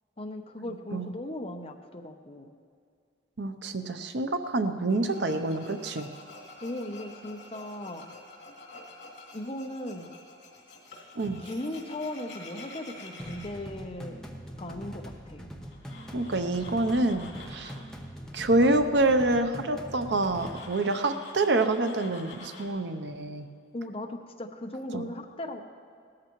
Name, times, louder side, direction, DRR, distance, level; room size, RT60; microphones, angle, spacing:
voice 1, 0.2-2.5 6.6-8.1 9.3-10.1 11.4-14.2 14.6-15.5 23.7-25.6, left 1 dB, 30° left, 4 dB, 0.8 m, -37 dB
voice 2, 3.4-6.1 11.2-11.4 16.1-17.7 18.3-23.5 24.9-25.0, right 2 dB, 75° right, 8 dB, 0.7 m, -27 dB
Tools, 4.9-13.5 15.7-17.9 20.1-22.7, left 2 dB, 80° left, 2.6 m, -48 dB
sound 1, 13.2-20.6, equal, 5° left, 0.9 m, -43 dB
18.0 x 13.5 x 3.1 m, 2.2 s
head